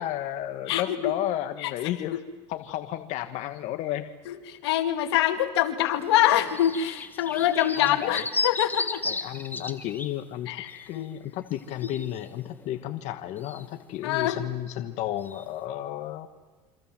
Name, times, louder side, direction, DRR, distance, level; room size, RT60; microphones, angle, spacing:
voice 1, 0.0-2.2 2.5-4.1 7.7-8.2 9.0-16.3, left 13 dB, 60° left, 8 dB, 1.4 m, -32 dB
voice 2, 0.7-1.1 1.6-1.7 4.3-9.0 10.5-11.1 14.0-14.4, left 12 dB, 90° left, 8 dB, 2.4 m, -25 dB
sound 1, 5.9-10.1 10.7-10.9 11.6-15.4, left 3 dB, 15° left, 1.7 m, -35 dB
27.5 x 25.5 x 7.6 m, 1.3 s
supercardioid pair, 105°, 13 cm